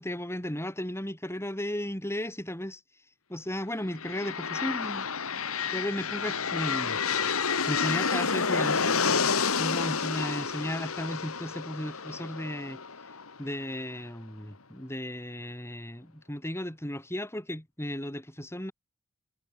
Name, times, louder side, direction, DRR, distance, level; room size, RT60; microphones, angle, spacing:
voice 1, 0.0-2.8 3.3-5.1 5.7-7.0 7.7-9.3 9.6-12.8 13.4-18.7, left 1 dB, 10° left, 5.9 m, -35 dB
sound 1, 3.9-13.7, left 5 dB, 80° left, 2.1 m, -29 dB
head